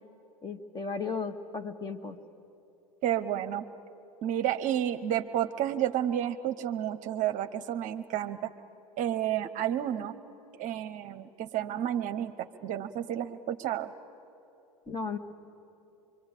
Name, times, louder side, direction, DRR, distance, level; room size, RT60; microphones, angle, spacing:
voice 1, 0.4-2.2 14.9-15.2, left 4 dB, 20° left, 7 dB, 1.7 m, -35 dB
voice 2, 3.0-3.6 4.2-8.5 9.0-10.1 10.6-13.9, right 11 dB, 40° right, 9 dB, 0.9 m, -31 dB
25.0 x 24.0 x 8.3 m, 2.9 s
hypercardioid pair, 90°, 19 cm